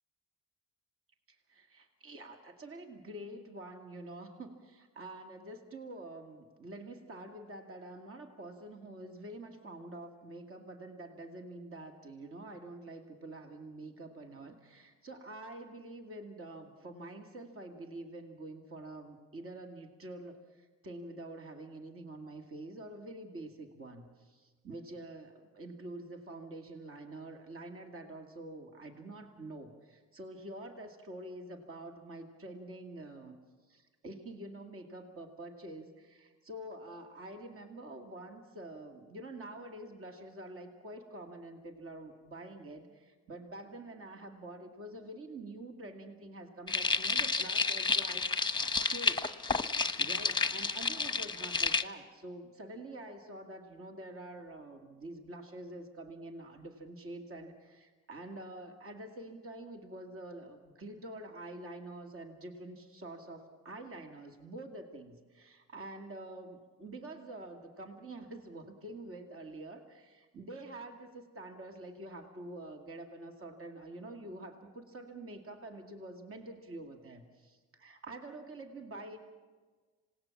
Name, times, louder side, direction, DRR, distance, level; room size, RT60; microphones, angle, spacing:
voice 1, 1.3-33.4 33.7-49.4 50.0-79.2, right 1 dB, 45° right, 4 dB, 2.4 m, -47 dB
sound 1, 46.7-51.8, left 4 dB, 15° left, 1.0 m, -31 dB
26.5 x 18.5 x 7.3 m, 1.4 s
cardioid pair, 90°, 30 cm